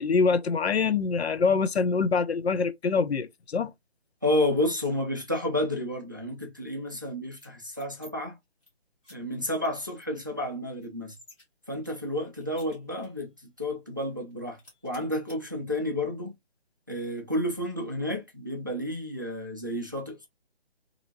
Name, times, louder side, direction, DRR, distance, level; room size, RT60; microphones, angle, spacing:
voice 1, 0.0-3.7, left 5 dB, 85° left, 0.5 m, -25 dB
voice 2, 4.2-8.4 9.1-11.2 11.7-13.3 13.6-16.3 16.9-20.3, left 1 dB, 20° right, 0.3 m, -31 dB
sound 1, 7.4-8.1 8.4-8.7 9.0-9.2 9.6-9.7 10.0-11.4 11.8-13.2 13.6-13.7 14.0-14.3 14.6-15.4, left 1 dB, 10° left, 0.7 m, -54 dB
2.7 x 2.6 x 2.7 m
figure-of-eight pair, 150°, 31 cm